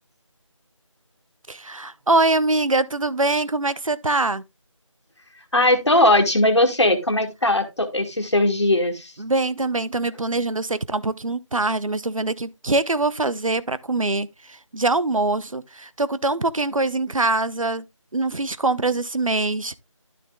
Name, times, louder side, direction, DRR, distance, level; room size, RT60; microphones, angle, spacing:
voice 1, 1.5-4.4 9.2-17.8 18.1-19.8, right 2 dB, 80° right, 0.8 m, -23 dB
voice 2, 5.5-9.1, left 1 dB, 55° left, 1.8 m, -19 dB
12.0 x 6.7 x 2.3 m
figure-of-eight pair, 180°, 17 cm